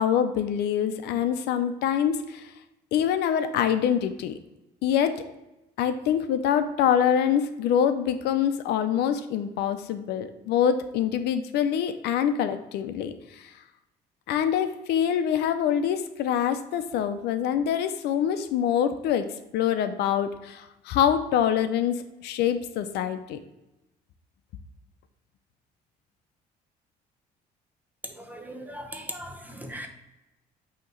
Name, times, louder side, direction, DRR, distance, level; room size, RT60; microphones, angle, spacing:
voice 1, 0.0-2.5 2.9-4.3 4.8-5.2 5.8-13.5 14.3-19.3 19.5-23.4, left 9 dB, 80° left, 10 dB, 0.5 m, -25 dB
voice 2, 28.2-29.9, right 1 dB, 10° right, 4 dB, 0.9 m, -39 dB
8.6 x 2.9 x 3.8 m, 0.96 s
cardioid pair, 110°, 17 cm